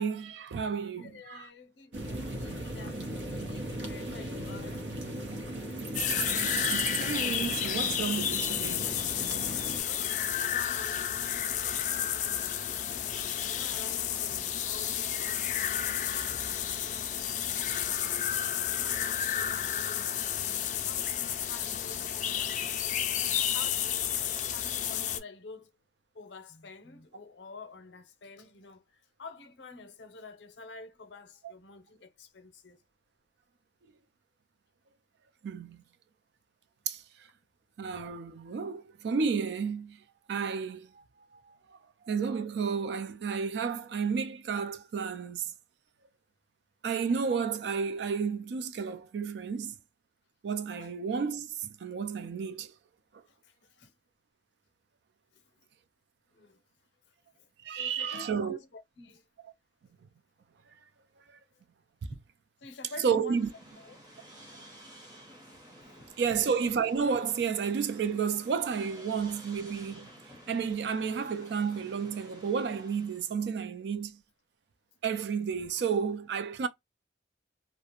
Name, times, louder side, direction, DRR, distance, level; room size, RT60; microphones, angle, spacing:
voice 1, 0.0-1.5 6.7-8.9 35.4-35.8 36.9-37.0 37.8-40.0 40.3-40.9 42.0-45.5 46.8-49.7 50.4-52.7 57.6-58.6 63.0-63.5 66.2-70.1 70.5-74.2 75.0-76.7, right 6 dB, 70° right, 0.3 m, -31 dB
voice 2, 1.0-4.9 9.5-11.2 11.8-12.0 13.4-17.0 17.5-20.1 20.8-22.7 23.5-24.2 24.5-25.7 26.1-32.8 50.8-50.9 53.3-53.9 55.3-55.4 56.3-56.6 57.4-57.5 57.7-59.3 62.6-64.0 65.8-66.4, left 3 dB, 85° left, 0.6 m, -49 dB
sound 1, 1.9-9.8, right 2 dB, 90° right, 0.8 m, -37 dB
sound 2, 5.9-25.2, left 10 dB, 45° left, 0.3 m, -31 dB
sound 3, 63.2-73.3, equal, 20° right, 0.7 m, -52 dB
2.4 x 2.1 x 2.8 m
head